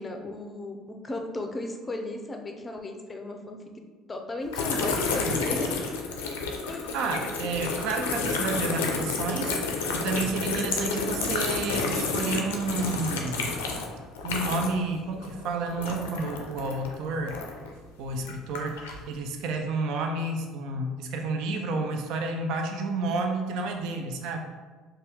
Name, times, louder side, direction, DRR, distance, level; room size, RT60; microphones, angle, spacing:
voice 1, 0.0-3.6 4.1-5.8 6.7-7.0, left 2 dB, 25° left, 3 dB, 0.5 m, -35 dB
sound 1, 4.5-14.9 15.2-17.7 18.2-19.0, left 4 dB, 90° left, 0.4 m, -30 dB
voice 2, 6.9-13.6 14.2-17.4 18.0-24.4, right 3 dB, 70° right, 3 dB, 0.3 m, -30 dB
2.7 x 2.3 x 3.4 m, 1.4 s
hypercardioid pair, 70°, 0 cm